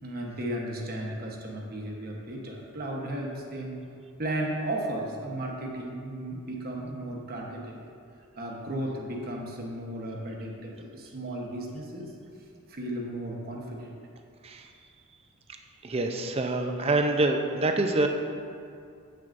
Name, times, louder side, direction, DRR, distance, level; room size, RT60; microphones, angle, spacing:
voice 1, 0.0-3.8 4.2-7.8 8.4-12.1 12.7-13.9, right 1 dB, 45° right, -1 dB, 1.1 m, -35 dB
voice 2, 15.8-18.1, right 2 dB, 25° right, 5 dB, 0.5 m, -26 dB
9.0 x 7.8 x 2.6 m, 2.4 s
head